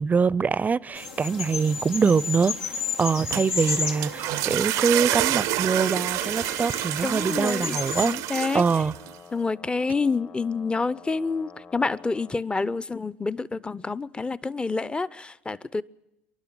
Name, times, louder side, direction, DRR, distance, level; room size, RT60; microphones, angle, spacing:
voice 1, 0.0-8.2 8.5-8.9, right 5 dB, 25° right, 0.6 m, -24 dB
sound 1, 1.0-8.1, left 5 dB, 85° left, 2.2 m, -33 dB
sound 2, 3.1-9.1, right 16 dB, 65° right, 0.7 m, -28 dB
Brass instrument, 5.3-12.4, left 5 dB, 45° left, 1.8 m, -49 dB
voice 2, 7.0-8.6 9.3-15.8, left 4 dB, 15° left, 0.7 m, -28 dB
27.5 x 11.5 x 8.9 m
hypercardioid pair, 75°, 6 cm